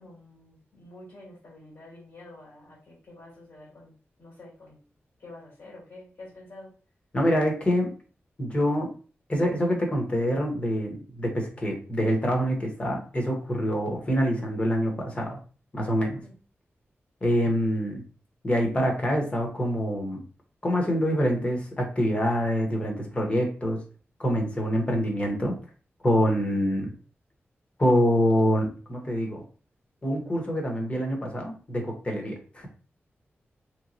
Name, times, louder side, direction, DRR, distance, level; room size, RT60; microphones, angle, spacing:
voice 1, 0.0-4.8 5.2-6.7 16.0-16.3, left 2 dB, 70° left, -5 dB, 1.8 m, -48 dB
voice 2, 7.1-7.9 8.4-8.9 9.3-15.4 15.7-16.2 17.2-18.0 18.4-20.2 20.6-23.8 24.2-25.5 26.0-26.9 27.8-29.4 30.0-32.7, equal, 30° left, 1 dB, 0.9 m, -25 dB
3.4 x 3.0 x 2.6 m, 0.38 s
wide cardioid pair, 165°, 4 cm